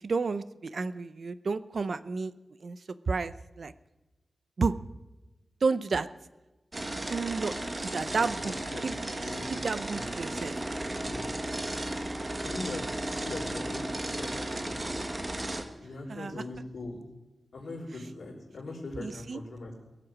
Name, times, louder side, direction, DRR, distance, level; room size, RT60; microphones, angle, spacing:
voice 1, 0.0-2.3 2.6-2.8 3.1-3.7 4.6-4.8 5.6-6.1 7.1-7.6 7.9-8.5 8.8-9.0 9.5-10.5 16.1-16.4 19.0-19.4, right 4 dB, 60° right, 14 dB, 0.7 m, -31 dB
sound 1, 6.7-15.6, right 1 dB, 25° right, 1.4 m, -34 dB
voice 2, 8.4-8.8 9.2-9.6 9.9-10.1 11.0-11.3 11.6-11.7 12.4-12.8 13.1-13.9 14.2-14.3 14.6-14.8 15.8-17.0 17.5-19.7, left 2 dB, 70° left, -1 dB, 4.5 m, -41 dB
22.0 x 7.7 x 6.3 m, 1.1 s
wide cardioid pair, 120°, 0 cm